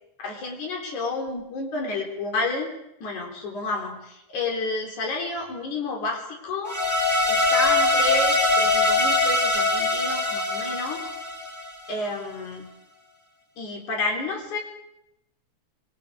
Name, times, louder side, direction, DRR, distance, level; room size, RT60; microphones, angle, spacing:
voice 1, 0.2-2.7 3.0-11.1 11.9-12.7 13.6-14.6, left 3 dB, 80° left, 0 dB, 5.4 m, -30 dB
sound 1, 6.7-11.9, left 2 dB, 10° right, 4.4 m, -22 dB
26.0 x 24.5 x 5.0 m, 0.82 s
omnidirectional pair, 3.4 m